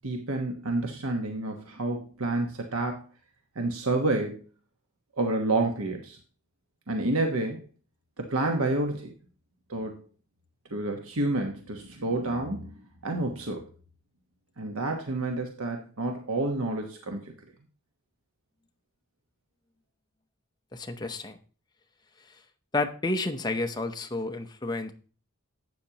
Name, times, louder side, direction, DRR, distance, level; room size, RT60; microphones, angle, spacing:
voice 1, 0.0-3.0 3.5-4.4 5.2-6.2 6.9-7.6 8.2-9.1 9.7-10.0 10.7-12.7 13.0-13.6 14.6-17.3, right 2 dB, 80° right, 3 dB, 1.2 m, -29 dB
voice 2, 20.7-21.4 22.7-24.9, left 2 dB, 20° left, 5 dB, 0.7 m, -30 dB
12.0 x 8.3 x 2.9 m, 0.38 s
head